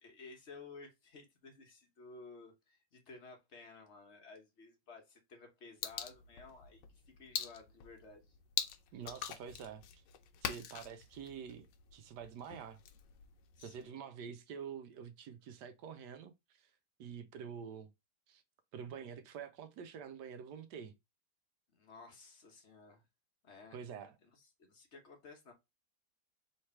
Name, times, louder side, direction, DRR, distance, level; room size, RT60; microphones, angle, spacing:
voice 1, 0.0-8.4 12.5-12.6 13.6-14.0 21.7-23.0 23.4-23.9 24.2-25.5, left 4 dB, 45° left, 1.1 m, -55 dB
sound 1, 5.8-13.8, left 9 dB, 70° left, 1.2 m, -44 dB
voice 2, 8.9-10.0 10.4-11.7 11.9-12.8 13.6-16.7 17.0-17.9 18.3-18.4 18.7-20.9 23.7-24.2, right 7 dB, 70° right, 1.0 m, -47 dB
3.3 x 3.2 x 4.3 m
omnidirectional pair, 2.1 m